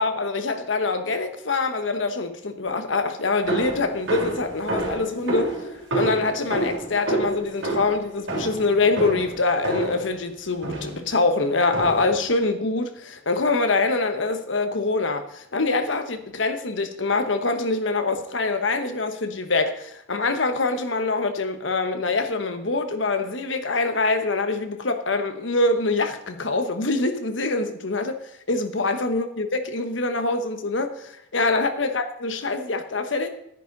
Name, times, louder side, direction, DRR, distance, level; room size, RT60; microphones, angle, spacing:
voice 1, 0.0-5.6 5.9-28.1 28.5-33.3, left 3 dB, 80° left, 1.1 m, -24 dB
sound 1, 3.5-10.1 10.6-11.1 11.7-12.2, right 2 dB, 85° right, 3.6 m, -28 dB
11.0 x 10.0 x 4.0 m
head